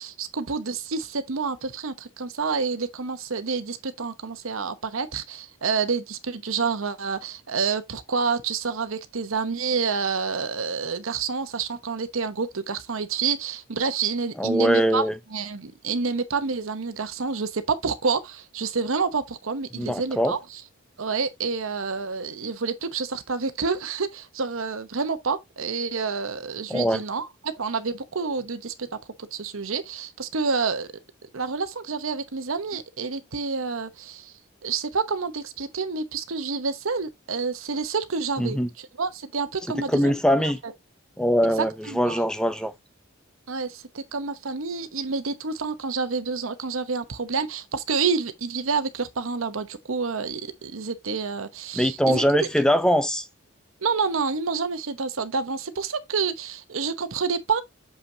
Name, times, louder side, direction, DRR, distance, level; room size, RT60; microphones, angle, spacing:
voice 1, 0.0-15.0 15.3-20.6 21.0-28.9 29.3-30.9 31.3-34.3 34.6-40.1 40.6-40.7 41.6-42.2 43.5-52.2 53.8-57.6, right 5 dB, 75° right, 0.9 m, -28 dB
voice 2, 14.4-15.1 19.8-20.3 26.7-27.0 38.4-38.7 39.9-40.6 41.2-42.7 51.7-53.3, equal, 5° left, 0.5 m, -22 dB
6.9 x 5.7 x 2.8 m
head